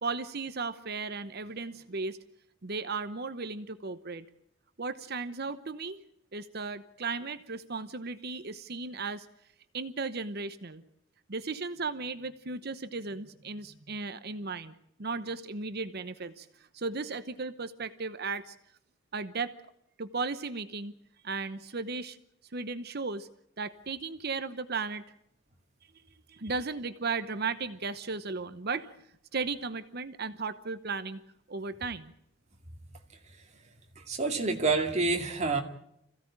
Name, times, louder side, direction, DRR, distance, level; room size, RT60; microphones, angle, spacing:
voice 1, 0.0-2.2 2.6-4.2 4.8-6.0 6.3-9.3 9.7-10.8 11.3-14.7 15.0-16.5 16.7-18.6 19.1-19.5 20.0-20.9 21.2-22.2 22.5-23.3 23.6-25.0 26.3-29.0 29.3-31.2 31.5-32.1, right 4 dB, 50° right, 11 dB, 0.9 m, -35 dB
voice 2, 34.0-35.6, right 3 dB, 30° right, 3 dB, 2.5 m, -28 dB
26.0 x 16.0 x 8.8 m, 0.77 s
head